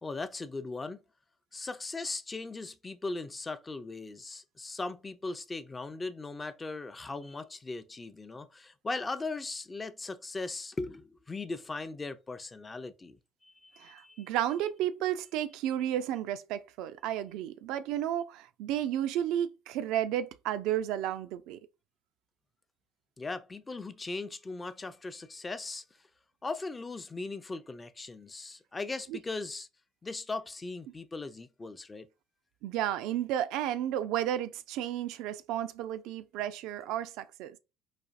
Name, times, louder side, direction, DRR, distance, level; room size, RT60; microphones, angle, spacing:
voice 1, 0.0-1.0 1.5-13.2 13.4-14.3 23.2-25.8 26.4-29.7 30.0-32.1, left 3 dB, 25° left, 0.4 m, -38 dB
voice 2, 13.8-21.6 29.1-29.2 32.6-37.6, right 11 dB, 70° right, 0.3 m, -32 dB
4.1 x 2.4 x 2.4 m
hypercardioid pair, 60°, 0 cm